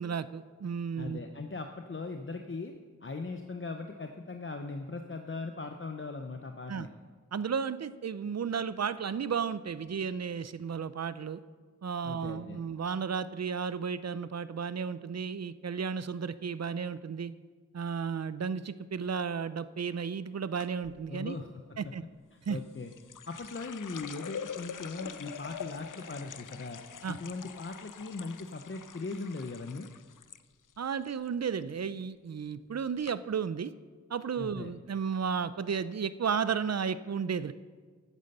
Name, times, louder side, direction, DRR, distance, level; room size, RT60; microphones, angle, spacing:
voice 1, 0.0-1.2 6.7-6.9 7.3-11.4 11.8-17.3 17.7-21.4 21.8-22.0 22.5-22.6 27.0-27.2 30.8-33.7 34.1-37.5, right 6 dB, 55° right, 15 dB, 0.5 m, -33 dB
voice 2, 1.0-2.7 3.0-6.9 12.0-12.7 21.1-21.9 22.5-22.9 23.3-26.8 27.1-29.9 34.4-34.7, left 3 dB, 40° left, 5 dB, 0.8 m, -39 dB
sound 1, 20.6-21.0 22.4-30.4 30.7-31.3 31.6-32.0 32.6-32.7 33.0-33.1, left 7 dB, 80° left, 0.5 m, -44 dB
9.7 x 9.5 x 6.7 m, 1.5 s
wide cardioid pair, 50°, 31 cm